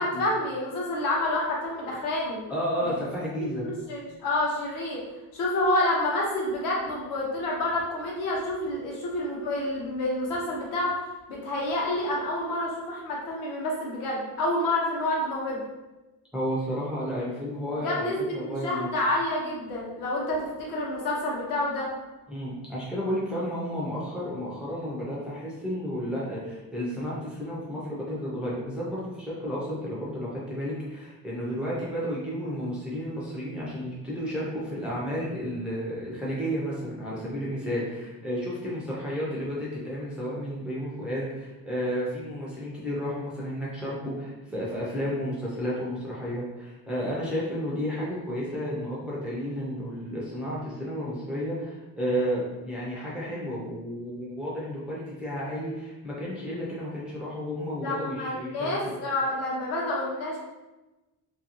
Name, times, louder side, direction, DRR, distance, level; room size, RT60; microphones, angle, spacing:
voice 1, 0.0-2.4 2.8-2.9 3.4-5.0 5.3-11.0 11.3-15.6 17.8-21.9 57.8-60.4, left 1 dB, 70° left, -3 dB, 1.0 m, -28 dB
voice 2, 2.5-3.6 16.3-18.9 22.3-58.9, equal, 5° right, -7 dB, 0.3 m, -32 dB
2.6 x 2.6 x 2.7 m, 1.1 s
cardioid pair, 175°, 35 cm